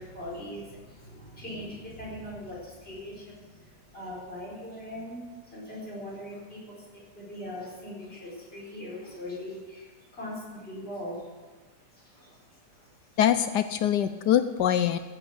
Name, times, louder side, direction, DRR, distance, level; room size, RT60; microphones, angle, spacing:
voice 1, 0.0-11.3 11.9-12.4 12.7-12.9, left 1 dB, 35° left, -4 dB, 5.0 m, -41 dB
voice 2, 13.2-15.0, left 10 dB, 75° left, 11 dB, 1.2 m, -23 dB
15.5 x 8.9 x 7.8 m, 1.3 s
omnidirectional pair, 1.9 m